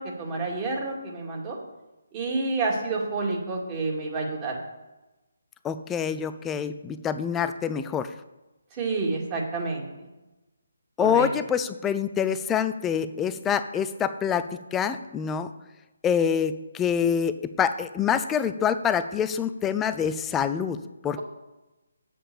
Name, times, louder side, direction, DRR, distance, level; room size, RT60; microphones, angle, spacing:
voice 1, 0.0-1.6 2.1-4.6 8.8-9.9 11.0-11.3, right 3 dB, 25° right, -2 dB, 2.5 m, -29 dB
voice 2, 5.6-8.1 11.0-15.5 16.0-20.8 21.0-21.2, left 7 dB, 10° left, 11 dB, 0.5 m, -26 dB
8.2 x 7.7 x 7.0 m, 1.1 s
figure-of-eight pair, 150°, 0 cm